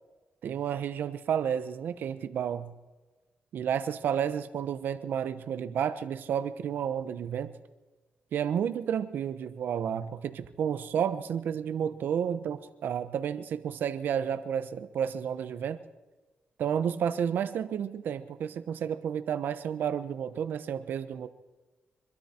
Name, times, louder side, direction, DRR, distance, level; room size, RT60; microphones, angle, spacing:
voice 1, 0.4-2.7 3.5-7.5 8.3-15.8 16.6-21.3, right 8 dB, 75° right, 12 dB, 1.0 m, -31 dB
24.5 x 13.0 x 4.5 m, 1.2 s
cardioid pair, 105°, 3 cm